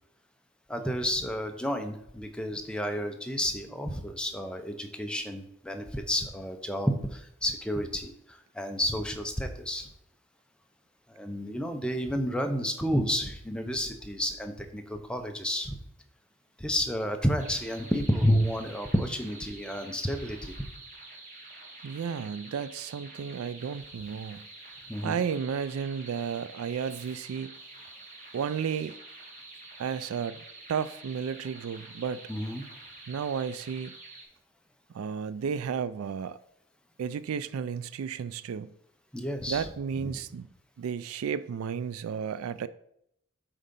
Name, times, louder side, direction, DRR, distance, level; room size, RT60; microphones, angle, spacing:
voice 1, 0.7-8.1 8.5-9.9 11.1-15.8 16.6-20.5 24.9-25.2 32.3-32.6 39.1-39.7 40.1-40.2, equal, 5° left, 0.7 m, -30 dB
sound 1, 17.4-34.2, right 2 dB, 35° right, 1.8 m, -48 dB
voice 2, 21.8-24.5 25.0-27.6 28.3-29.0 29.8-32.3 33.1-33.9 34.9-36.4 37.0-38.7 39.5-40.5 40.8-42.7, right 7 dB, 85° right, 0.3 m, -33 dB
8.2 x 3.8 x 5.3 m
head